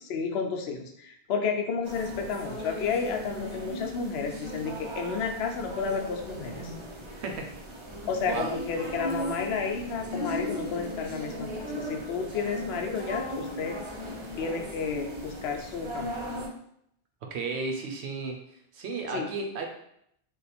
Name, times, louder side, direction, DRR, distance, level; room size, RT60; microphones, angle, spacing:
voice 1, 0.1-6.7 8.1-13.8 14.4-16.2 19.1-19.3, left 5 dB, 75° left, 3 dB, 0.8 m, -31 dB
sound 1, 1.8-16.5, equal, 35° right, 0.5 m, -37 dB
voice 2, 17.3-18.4 18.7-19.6, right 3 dB, 90° right, 2 dB, 1.0 m, -33 dB
3.3 x 2.3 x 4.1 m, 0.72 s
omnidirectional pair, 1.1 m